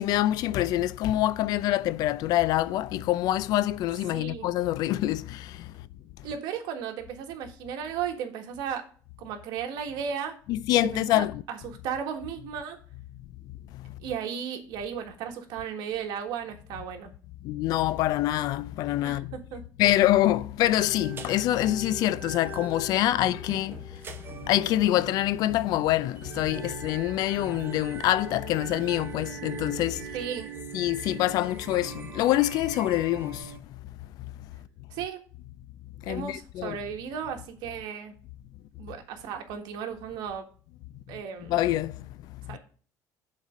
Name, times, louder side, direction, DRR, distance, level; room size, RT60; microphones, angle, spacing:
voice 1, 0.0-5.4 10.5-11.4 17.4-19.3 19.8-23.7 24.5-30.0 30.7-33.4 36.1-36.8 41.5-41.9, left 14 dB, 65° left, 0.4 m, -25 dB
voice 2, 4.1-4.5 6.2-8.9 9.2-10.4 10.9-12.8 14.0-17.1 19.0-19.6 30.1-30.5 34.9-35.2 36.1-38.1 38.8-40.5 41.1-41.6 42.5-42.6, right 8 dB, 75° right, 1.6 m, -35 dB
sound 1, 20.8-33.6, right 7 dB, 30° right, 1.0 m, -42 dB
7.2 x 4.2 x 6.3 m
cardioid pair, 140°, 7 cm